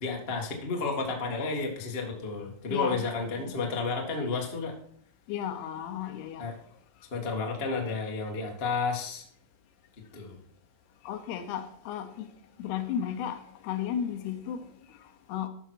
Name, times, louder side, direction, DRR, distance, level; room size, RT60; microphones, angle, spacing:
voice 1, 0.0-4.7 6.4-6.5 7.1-9.2 10.1-10.4, left 4 dB, 55° left, 0.6 m, -31 dB
voice 2, 2.7-3.0 5.3-6.5 11.0-12.3 12.6-15.5, left 9 dB, 75° left, 2.9 m, -34 dB
12.5 x 6.2 x 4.6 m
omnidirectional pair, 4.9 m